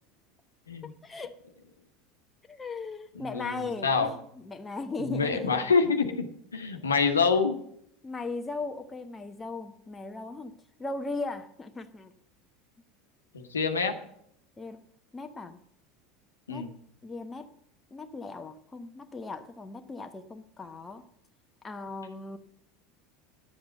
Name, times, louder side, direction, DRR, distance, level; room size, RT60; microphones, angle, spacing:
voice 1, 0.8-1.4 2.4-5.7 8.0-10.5 10.8-12.1 14.6-14.8 15.1-15.6 16.5-16.7 17.0-17.5 17.9-21.0 21.6-22.4, left 3 dB, 15° left, 0.9 m, -38 dB
voice 2, 3.3-4.1 5.0-7.6 13.3-13.9 16.5-16.7, left 5 dB, 80° left, 1.1 m, -26 dB
10.5 x 7.9 x 7.2 m
figure-of-eight pair, 75°, 0 cm